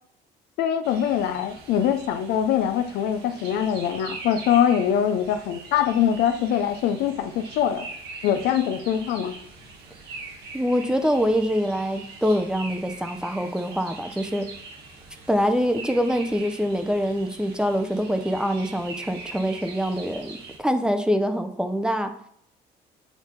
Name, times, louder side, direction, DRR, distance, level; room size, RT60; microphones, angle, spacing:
voice 1, 0.6-7.9 8.2-9.3, left 9 dB, 80° left, 9 dB, 0.6 m, -23 dB
sound 1, 0.8-20.6, right 3 dB, 80° right, 1.4 m, -42 dB
voice 2, 10.5-14.5 15.3-22.1, equal, 5° right, 8 dB, 0.6 m, -24 dB
7.4 x 2.7 x 5.1 m, 0.68 s
cardioid pair, 110°, 17 cm